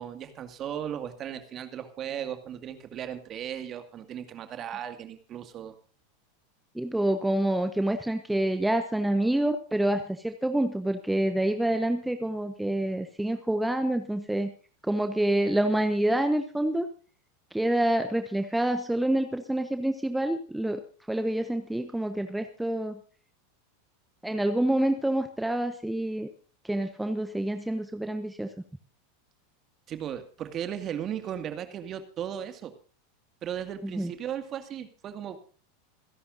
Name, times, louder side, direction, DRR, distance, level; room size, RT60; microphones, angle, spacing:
voice 1, 0.0-5.7 29.9-32.7 33.4-35.4, right 9 dB, 35° right, 8 dB, 2.2 m, -36 dB
voice 2, 6.7-14.5 14.8-16.9 17.5-20.8 21.1-23.0 24.2-26.3 26.6-28.5 33.8-34.1, right 1 dB, 5° right, 7 dB, 1.2 m, -27 dB
27.0 x 11.0 x 2.7 m, 0.39 s
figure-of-eight pair, 90°, 0 cm